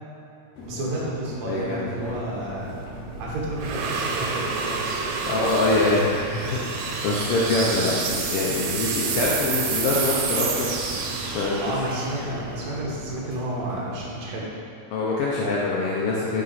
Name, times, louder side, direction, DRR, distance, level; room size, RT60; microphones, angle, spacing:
sound 1, 0.5-14.4, left 1 dB, 65° left, 2.3 m, -41 dB
voice 1, 0.7-2.8 3.2-5.0 11.6-14.5, right 1 dB, 55° right, -5 dB, 1.1 m, -31 dB
voice 2, 1.5-1.9 5.3-10.7 11.3-11.6 14.9-16.4, left 2 dB, 80° left, -5 dB, 1.2 m, -24 dB
sound 2, 2.1-13.3, right 5 dB, 80° right, 2.1 m, -29 dB
8.7 x 3.9 x 4.1 m, 2.8 s
omnidirectional pair, 3.5 m